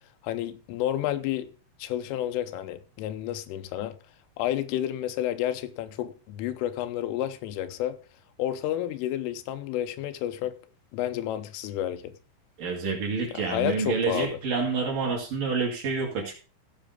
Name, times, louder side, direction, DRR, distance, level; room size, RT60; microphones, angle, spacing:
voice 1, 0.2-1.5 1.8-4.0 4.4-8.0 8.4-10.6 10.9-12.2 13.3-14.4, left 12 dB, 90° left, 3.3 m, -30 dB
voice 2, 12.6-16.4, right 5 dB, 50° right, 3.3 m, -28 dB
16.0 x 6.1 x 3.8 m
omnidirectional pair, 5.7 m